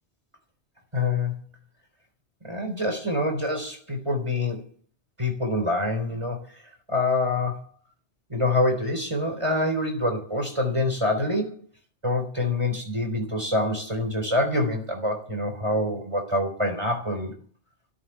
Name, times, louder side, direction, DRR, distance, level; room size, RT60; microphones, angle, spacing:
voice 1, 0.9-1.3 2.4-4.6 5.2-6.6 6.9-7.7 8.3-11.5 12.0-17.3, left 2 dB, 25° right, 3 dB, 3.8 m, -26 dB
16.5 x 7.2 x 8.7 m, 0.42 s
omnidirectional pair, 1.2 m